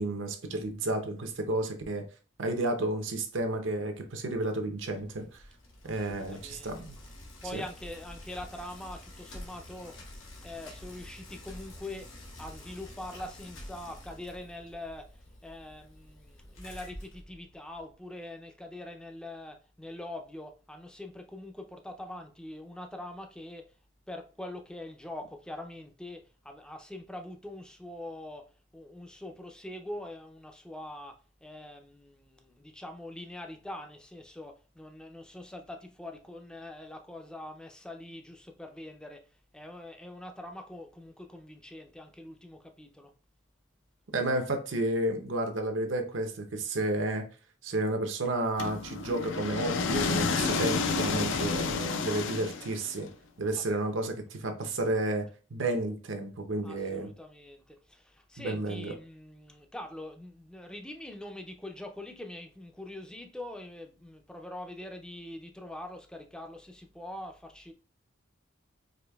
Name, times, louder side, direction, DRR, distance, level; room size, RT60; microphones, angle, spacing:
voice 1, 0.0-2.0 2.4-5.3 5.8-7.0 7.5-7.6 44.1-47.3 47.6-53.1 53.4-57.1 58.4-58.9, right 2 dB, 70° right, 0.7 m, -31 dB
Bicycle, 4.8-17.9, left 1 dB, 90° left, 1.2 m, -48 dB
voice 2, 5.9-6.7 7.4-10.0 10.4-15.1 15.4-23.6 24.1-28.5 28.7-31.2 31.4-39.3 39.5-43.1 53.5-53.6 56.6-67.7, left 1 dB, 5° left, 0.4 m, -43 dB
sound 1, 48.6-53.0, left 4 dB, 70° left, 0.4 m, -30 dB
4.9 x 2.6 x 2.3 m
head